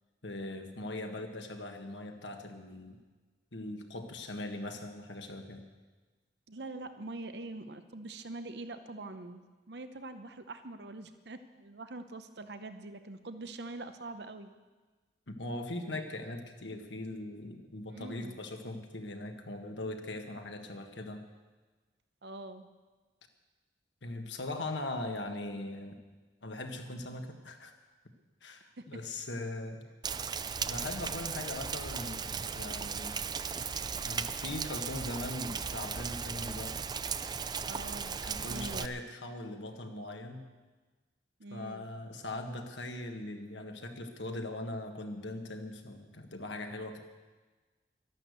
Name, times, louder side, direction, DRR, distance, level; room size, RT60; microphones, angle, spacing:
voice 1, 0.2-3.0 3.5-5.6 15.3-21.2 24.0-26.0 26.4-27.7 28.4-29.8 30.6-33.2 34.0-36.8 38.2-40.5 41.5-47.0, left 2 dB, 90° left, 5 dB, 1.6 m, -40 dB
voice 2, 6.5-9.4 9.7-14.5 17.9-18.4 22.2-22.7 28.8-28.9 37.6-38.9 41.4-41.9, right 2 dB, 70° right, 9 dB, 0.9 m, -44 dB
Rain, 30.0-38.9, right 6 dB, 25° right, 0.4 m, -37 dB
12.0 x 11.5 x 8.1 m, 1.3 s
head